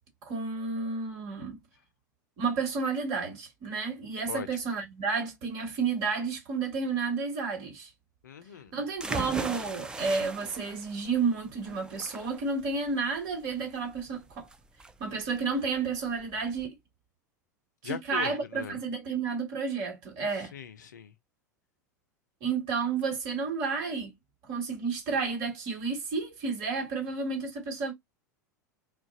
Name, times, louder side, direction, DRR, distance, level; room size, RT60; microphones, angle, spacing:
voice 1, 0.2-1.6 2.4-7.9 8.7-14.5 15.0-16.7 17.8-20.5 22.4-24.1 24.4-27.9, right 4 dB, 45° right, 1.4 m, -31 dB
voice 2, 8.2-8.7 17.8-18.8 20.5-21.1, left 8 dB, 70° left, 0.5 m, -39 dB
sound 1, 9.0-16.7, right 3 dB, 10° right, 0.4 m, -40 dB
2.4 x 2.1 x 2.4 m
figure-of-eight pair, 85°, 10 cm